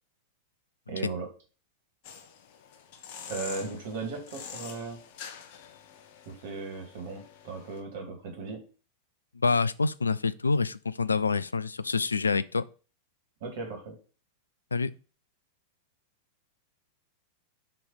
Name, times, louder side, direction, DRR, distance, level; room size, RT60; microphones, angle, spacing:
voice 1, 0.9-1.3 3.3-5.0 6.3-8.6 13.4-14.0, right 4 dB, 55° right, 2.2 m, -37 dB
sound 1, 2.0-7.8, left 7 dB, 50° left, 1.0 m, -46 dB
voice 2, 9.4-12.6 14.7-14.9, left 4 dB, 75° left, 0.3 m, -26 dB
6.8 x 3.1 x 5.6 m
figure-of-eight pair, 90°, 0 cm